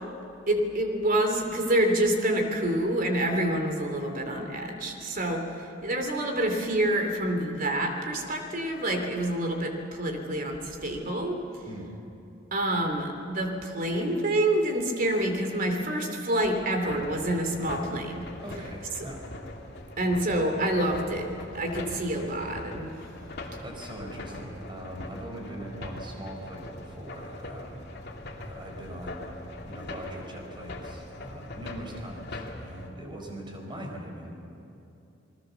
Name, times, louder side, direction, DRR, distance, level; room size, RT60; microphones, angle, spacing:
voice 1, 0.5-5.5 5.8-11.4 12.5-18.3 20.0-22.9, right 1 dB, 45° right, 4 dB, 3.1 m, -27 dB
sound 1, 16.9-32.9, left 1 dB, 55° left, 2.7 m, -41 dB
voice 2, 18.4-19.3 23.6-28.1 28.4-29.2 29.6-34.4, right 1 dB, 25° right, 1 dB, 4.7 m, -41 dB
29.0 x 20.0 x 7.1 m, 2.8 s
head